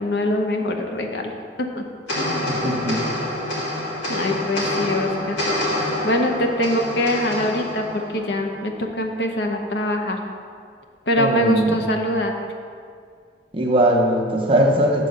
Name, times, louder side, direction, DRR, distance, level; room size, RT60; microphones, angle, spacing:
voice 1, 0.0-1.3 1.8-1.9 2.2-2.5 4.1-5.4 6.0-10.2 11.1-12.3, left 1 dB, 70° left, 3 dB, 0.8 m, -23 dB
sound 1, 2.1-8.7, left 1 dB, 90° left, 2.1 m, -27 dB
voice 2, 2.5-3.0 11.2-11.8 13.5-15.1, right 1 dB, 30° right, 0 dB, 0.8 m, -20 dB
7.4 x 4.0 x 6.5 m, 2.1 s
head